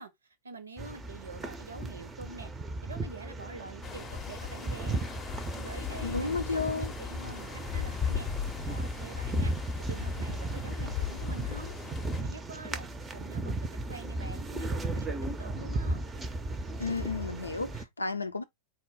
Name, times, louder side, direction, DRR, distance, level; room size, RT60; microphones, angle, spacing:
voice 1, 0.0-2.5 2.8-5.0 5.5-8.3 8.6-11.7 12.2-16.0, right 3 dB, 75° right, 0.7 m, -46 dB
sound 1, 0.8-17.9, right 2 dB, 15° right, 0.6 m, -36 dB
sound 2, 3.8-12.2, left 8 dB, 25° left, 0.7 m, -38 dB
voice 2, 6.0-6.9 16.8-18.4, left 4 dB, 80° left, 0.5 m, -32 dB
4.2 x 2.2 x 3.6 m
figure-of-eight pair, 90°, 0 cm